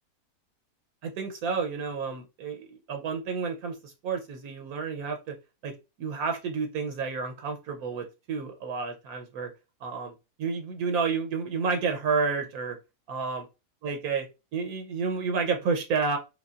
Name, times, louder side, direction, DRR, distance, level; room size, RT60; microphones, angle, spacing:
voice 1, 1.0-5.3 5.6-5.7 6.0-9.5 9.8-10.1 10.4-12.8 13.1-13.4 13.8-14.3 14.5-16.2, right 5 dB, 80° right, 5 dB, 1.2 m, -30 dB
4.9 x 2.3 x 2.4 m, 0.27 s
omnidirectional pair, 1.5 m